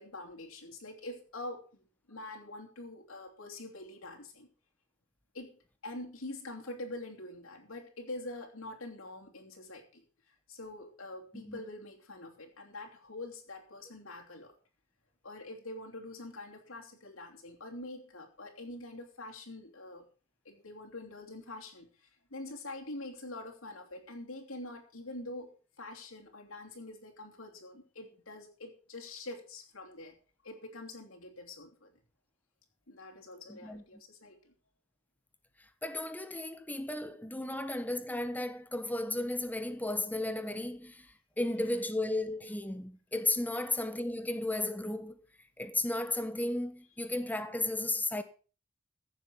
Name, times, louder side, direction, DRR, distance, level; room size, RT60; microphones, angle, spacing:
voice 1, 0.0-4.5 5.3-10.0 10.5-14.5 15.2-20.1 20.4-30.2 30.4-31.9 32.9-34.5 41.6-41.8 43.5-43.7, left 2 dB, 75° left, 3.1 m, -45 dB
voice 2, 33.5-34.0 35.8-45.2 45.6-48.2, left 2 dB, 10° left, 1.1 m, -34 dB
15.5 x 7.3 x 6.0 m
head